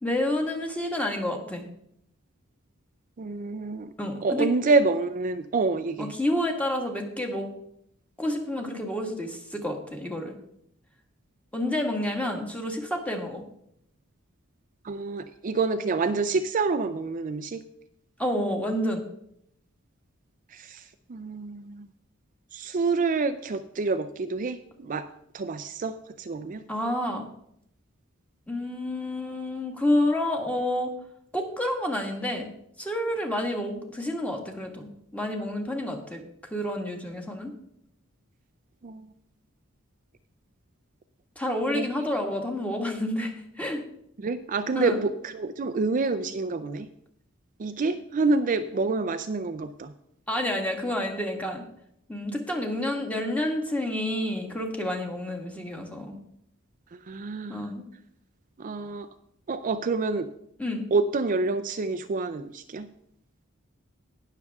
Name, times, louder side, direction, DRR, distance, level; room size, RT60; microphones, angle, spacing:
voice 1, 0.0-1.6 4.0-4.5 6.0-7.5 8.2-10.3 11.5-13.4 18.2-19.0 26.7-27.3 28.5-30.9 31.3-32.5 32.8-36.2 36.5-37.5 41.3-43.8 44.7-45.0 50.3-51.6 52.1-56.2 57.5-57.9 60.6-60.8, left 1 dB, 5° left, 2 dB, 1.7 m, -29 dB
voice 2, 3.2-3.9 4.2-6.1 14.9-17.6 21.1-21.8 22.5-25.1 25.3-26.6 38.8-39.0 41.7-41.8 44.2-45.1 45.3-46.9 47.6-49.9 57.1-57.6 58.6-59.1 59.5-60.3 60.9-62.9, right 3 dB, 40° right, 10 dB, 0.5 m, -27 dB
19.0 x 6.7 x 3.5 m, 0.73 s
head